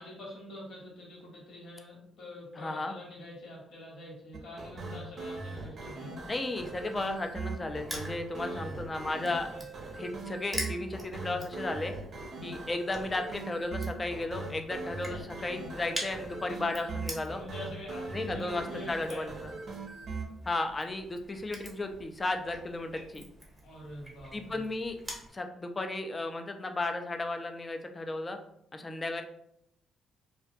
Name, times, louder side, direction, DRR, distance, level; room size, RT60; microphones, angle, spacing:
voice 1, 0.0-6.1 8.3-8.7 9.5-9.6 15.0-15.5 16.5-17.0 17.3-19.4 23.6-24.6, left 1 dB, 70° left, -4 dB, 1.1 m, -45 dB
voice 2, 2.6-2.9 6.3-9.5 9.9-11.9 12.4-17.4 18.1-19.5 20.5-23.3 24.3-25.0 25.3-28.4 28.7-29.2, left 2 dB, 25° left, 6 dB, 0.3 m, -34 dB
sound 1, 4.3-20.2, right 3 dB, 50° right, 0.5 m, -40 dB
Crushing, 6.7-25.3, equal, 5° right, 0.8 m, -46 dB
2.4 x 2.2 x 2.6 m, 0.74 s
cardioid pair, 90°, 0 cm